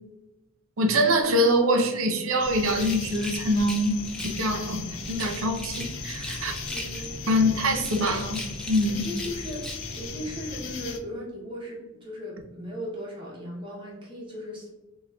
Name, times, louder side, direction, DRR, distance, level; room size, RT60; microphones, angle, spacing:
voice 1, 0.8-4.0 4.2-4.8 5.1-6.5 7.3-8.4 8.7-9.1, equal, 80° right, 4 dB, 0.6 m, -24 dB
sound 1, 2.4-11.0, left 4 dB, 70° left, 0.5 m, -37 dB
Rattle, 2.6-4.5 5.0-7.2 7.6-10.1, equal, 5° left, 0.4 m, -40 dB
voice 2, 6.6-7.5 8.9-14.7, equal, 25° right, -4 dB, 0.7 m, -37 dB
5.8 x 2.3 x 2.2 m, 1.1 s
head